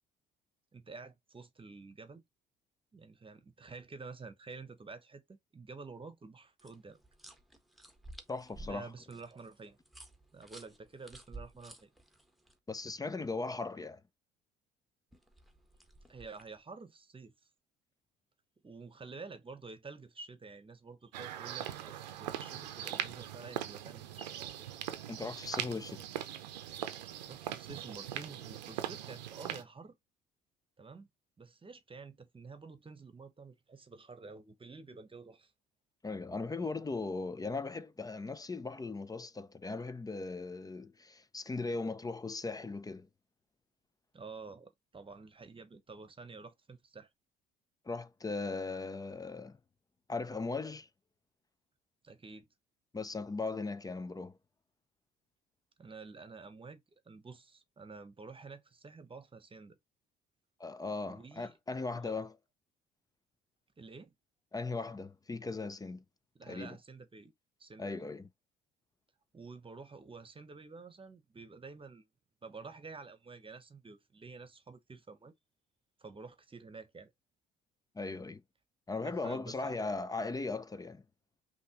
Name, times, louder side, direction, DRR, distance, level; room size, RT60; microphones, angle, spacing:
voice 1, 0.7-2.2 2.9-7.0 8.6-9.8 10.3-11.9 16.1-17.3 18.6-24.5 27.3-30.0 30.8-31.1 31.4-35.5 44.1-47.1 52.0-52.5 55.8-59.8 61.0-61.6 61.9-62.1 63.8-64.1 66.4-67.3 67.6-68.1 69.3-72.1 72.4-75.3 76.0-77.1 79.0-79.7, right 4 dB, 25° right, 1.1 m, -50 dB
sound 1, 6.6-12.5 15.1-16.6, right 2 dB, ahead, 1.3 m, -53 dB
voice 2, 8.3-8.9 12.7-14.0 25.1-26.1 36.0-43.1 47.8-49.6 50.1-50.9 52.9-54.4 60.6-62.3 64.5-66.0 66.5-66.8 67.8-68.3 77.9-78.4 78.9-81.0, left 3 dB, 15° left, 0.6 m, -38 dB
sound 2, 21.1-29.6, right 11 dB, 90° right, 0.7 m, -41 dB
5.4 x 3.0 x 3.0 m
hypercardioid pair, 60°, 21 cm